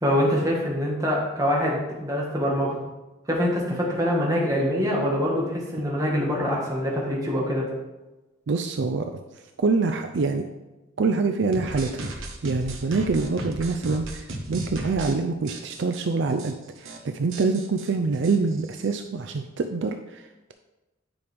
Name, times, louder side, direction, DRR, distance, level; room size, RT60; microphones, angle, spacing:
voice 1, 0.0-2.8 3.3-7.7, equal, 15° right, -3 dB, 1.5 m, -24 dB
voice 2, 8.5-9.2 9.6-10.5 11.0-20.5, right 4 dB, 60° right, 6 dB, 0.4 m, -26 dB
sound 1, 11.5-15.1 15.5-16.0 16.4-16.5 16.8-17.0 17.3-19.0, right 2 dB, 75° right, 1.0 m, -35 dB
9.4 x 5.2 x 3.5 m, 1.1 s
head